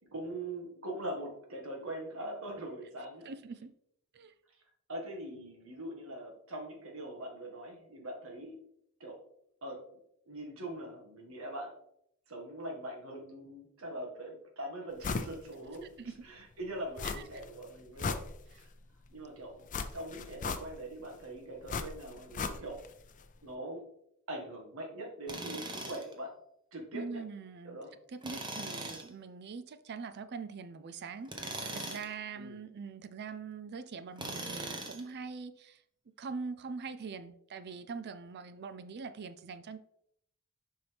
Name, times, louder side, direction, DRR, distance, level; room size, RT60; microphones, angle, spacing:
voice 1, 0.0-3.3 4.9-8.6 9.0-9.2 9.6-10.0 10.3-11.7 12.3-15.9 16.2-18.2 18.5-18.7 19.1-19.7 19.9-22.8 23.4-23.8 24.3-26.3 26.7-27.2 27.6-27.9 32.3-32.6, right 1 dB, 70° right, 1.7 m, -42 dB
voice 2, 3.2-3.7 4.1-4.3 15.8-16.3 17.0-17.2 26.9-27.8 28.1-35.8 36.2-39.8, right 5 dB, 50° right, 0.4 m, -43 dB
sound 1, 15.0-15.4 15.7-15.8 17.0-17.5 17.8-18.8 19.7-21.0 21.7-22.9 23.2-23.3, left 4 dB, 35° left, 0.5 m, -37 dB
Tools, 25.3-26.1 28.2-29.1 31.3-32.1 34.2-35.1, right 2 dB, 20° right, 1.0 m, -40 dB
6.9 x 5.5 x 3.4 m
head